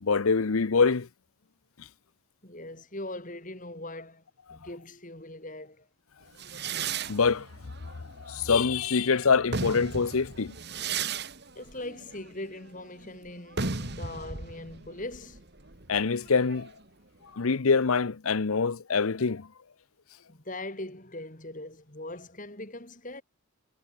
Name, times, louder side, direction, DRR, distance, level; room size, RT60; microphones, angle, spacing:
voice 1, 0.0-1.1 7.1-7.5 7.9-10.6 15.9-16.7 17.3-19.5, left 5 dB, 80° left, 0.8 m, -25 dB
voice 2, 2.4-4.2 4.5-5.9 11.6-15.4 20.3-23.2, left 1 dB, 35° left, 3.9 m, -40 dB
sound 1, 6.4-8.9 9.3-16.8, right 5 dB, 50° right, 2.0 m, -36 dB
head